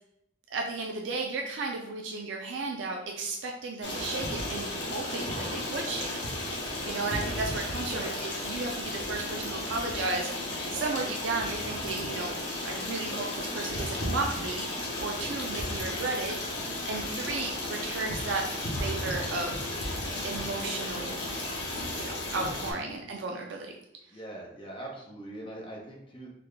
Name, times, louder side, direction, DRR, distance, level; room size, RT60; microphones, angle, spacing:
voice 1, 0.5-12.4 12.6-14.7 15.0-16.5 16.9-19.6 20.2-21.2 21.9-23.7, right 3 dB, 80° right, 1 dB, 0.4 m, -34 dB
Stream, 3.8-22.7, left 1 dB, 70° left, 0.9 m, -34 dB
voice 2, 24.1-26.3, right 1 dB, 25° left, -1 dB, 0.7 m, -42 dB
4.0 x 2.2 x 3.2 m, 0.81 s
head